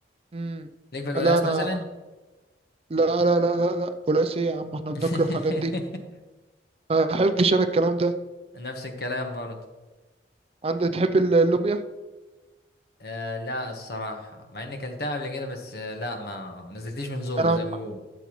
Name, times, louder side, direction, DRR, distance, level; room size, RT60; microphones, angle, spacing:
voice 1, 0.3-0.7 1.2-1.7 2.9-5.3 5.6-5.7 6.9-8.1 10.6-11.8 17.4-17.6, right 3 dB, 30° right, 9 dB, 0.4 m, -22 dB
voice 2, 0.9-1.9 4.9-5.8 8.5-9.6 13.0-18.0, left 1 dB, 55° left, 4 dB, 1.2 m, -32 dB
12.0 x 7.0 x 3.1 m, 1.2 s
head